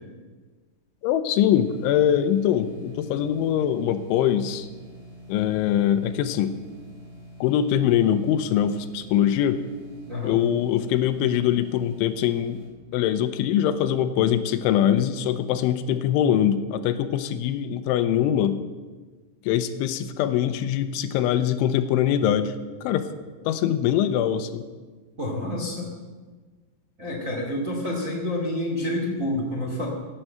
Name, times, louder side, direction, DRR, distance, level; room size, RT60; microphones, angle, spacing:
voice 1, 1.0-4.7 5.3-6.5 7.4-9.6 10.2-12.6 12.9-18.6 19.5-22.5 22.8-23.0 23.5-24.6, left 10 dB, 80° left, 10 dB, 3.1 m, -23 dB
sound 1, 1.5-12.7, equal, 60° right, 6.9 m, -45 dB
voice 2, 10.1-10.4 25.2-25.9 27.0-29.9, left 1 dB, 30° right, -1 dB, 1.4 m, -28 dB
16.0 x 10.0 x 7.7 m, 1.4 s
omnidirectional pair, 5.6 m